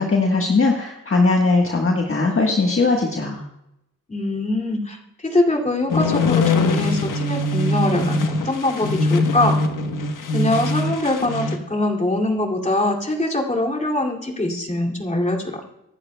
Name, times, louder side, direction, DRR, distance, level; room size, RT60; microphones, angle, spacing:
voice 1, 0.0-3.4, left 3 dB, 40° left, 0 dB, 1.5 m, -19 dB
voice 2, 4.1-9.5 10.3-15.6, left 1 dB, 20° left, 1 dB, 2.6 m, -23 dB
sound 1, 5.9-11.6, left 2 dB, 75° left, 1.3 m, -22 dB
25.0 x 10.5 x 2.3 m, 0.84 s
cardioid pair, 70°, 32 cm